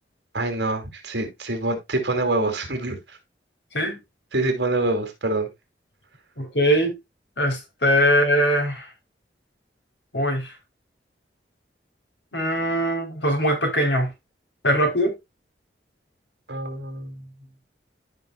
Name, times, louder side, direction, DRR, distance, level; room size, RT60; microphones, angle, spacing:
voice 1, 0.3-3.2 4.3-5.5 16.5-17.5, right 2 dB, 70° right, 2.7 m, -26 dB
voice 2, 6.4-7.0 7.4-8.9 10.1-10.6 12.3-14.1 14.6-15.1, equal, 75° left, 3.3 m, -21 dB
14.0 x 5.3 x 2.2 m
head